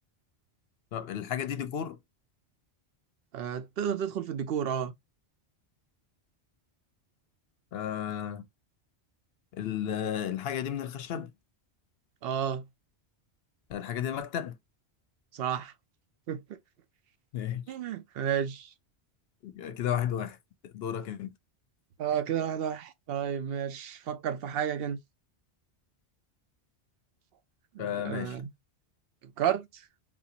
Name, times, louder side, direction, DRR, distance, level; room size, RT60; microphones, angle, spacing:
voice 1, 0.9-2.0 7.7-8.5 9.5-11.3 13.7-14.6 17.3-17.6 19.4-20.4 20.6-21.3 27.8-28.4, left 9 dB, 70° left, 0.8 m, -33 dB
voice 2, 3.3-4.9 12.2-12.7 15.3-15.7 16.3-16.4 17.7-18.7 22.0-25.0 27.7-28.5 29.2-29.8, right 9 dB, 65° right, 0.8 m, -32 dB
3.8 x 2.5 x 2.8 m
omnidirectional pair, 1.1 m